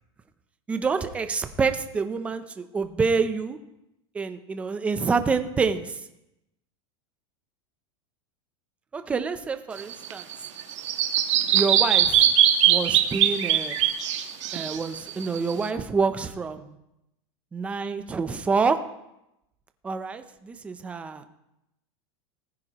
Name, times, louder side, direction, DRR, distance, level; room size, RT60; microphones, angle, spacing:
voice 1, 0.7-3.6 4.1-6.0 8.9-10.3 11.5-12.3 12.7-13.8 14.5-16.8 17.5-18.8 19.8-21.3, right 4 dB, 10° right, 9 dB, 0.5 m, -27 dB
Bird vocalization bird call bird song, 9.8-15.7, right 10 dB, 75° right, 1.4 m, -22 dB
19.5 x 9.6 x 3.0 m, 0.87 s
supercardioid pair, 175°, 16 cm